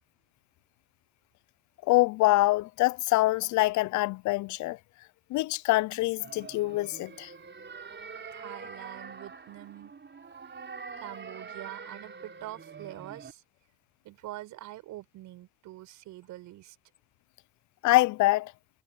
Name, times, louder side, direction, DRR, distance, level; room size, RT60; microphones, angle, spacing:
voice 1, 1.9-4.8 5.3-7.3 17.8-18.5, left 19 dB, 70° left, 0.7 m, -25 dB
sound 1, 6.2-13.3, right 5 dB, 40° right, 4.9 m, -45 dB
voice 2, 8.3-9.9 11.0-13.4 14.0-16.8, right 15 dB, 75° right, 7.8 m, -44 dB
hypercardioid pair, 50°, 30 cm